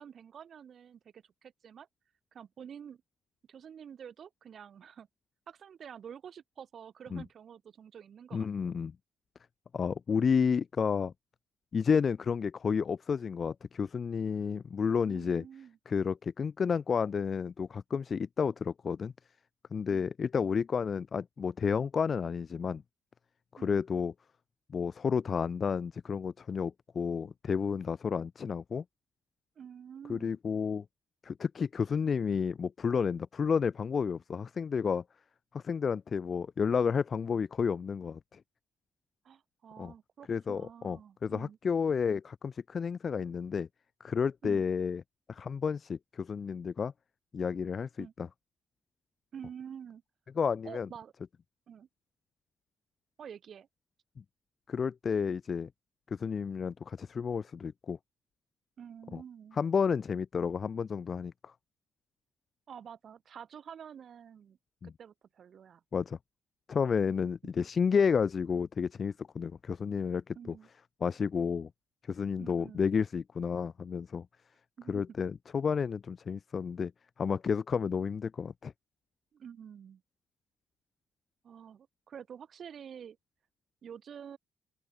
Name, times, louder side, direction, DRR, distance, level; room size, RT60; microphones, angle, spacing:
voice 1, 0.0-1.9 2.3-3.0 3.5-5.1 5.5-8.8 15.1-15.8 19.9-20.1 23.6-23.8 29.6-30.4 39.2-41.6 44.4-44.6 48.0-48.1 49.3-50.0 50.6-51.1 51.7-51.9 53.2-53.7 58.8-59.6 62.7-64.6 65.0-65.8 69.4-69.5 70.3-70.7 72.4-72.8 74.8-75.0 79.3-80.0 81.4-83.2 83.8-84.4, right 8 dB, 55° right, 7.6 m, -48 dB
voice 2, 8.3-8.9 9.7-11.1 11.7-15.4 15.9-19.1 19.7-22.8 23.5-24.1 24.7-28.8 30.1-30.8 31.2-35.0 35.5-38.4 39.8-39.9 40.3-43.7 44.0-45.0 45.3-46.9 47.3-48.3 50.4-50.9 54.7-55.7 56.1-58.0 59.1-59.2 59.6-61.5 64.8-64.9 65.9-66.2 66.7-70.5 71.0-71.7 72.1-74.3 74.9-76.9 77.2-78.7, left 6 dB, 45° left, 0.6 m, -31 dB
open air
cardioid pair, 90°, 0 cm